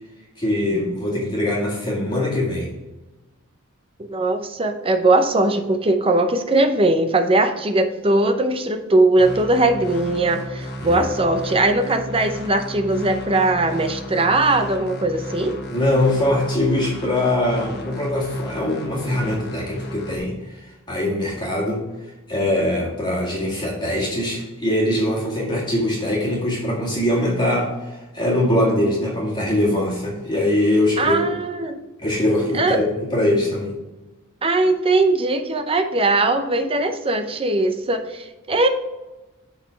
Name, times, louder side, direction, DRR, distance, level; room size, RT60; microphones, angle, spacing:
voice 1, 0.4-2.7 10.8-11.0 15.7-20.3 20.9-21.8 22.3-31.3 32.0-32.8 33.1-33.7, left 1 dB, 20° left, -4 dB, 1.9 m, -22 dB
voice 2, 4.0-15.6 31.0-31.8 32.5-32.8 34.4-38.7, right 2 dB, 25° right, 6 dB, 0.6 m, -20 dB
sound 1, 9.2-20.2, equal, 50° left, 1.3 m, -34 dB
7.1 x 3.9 x 5.7 m, 1.1 s
head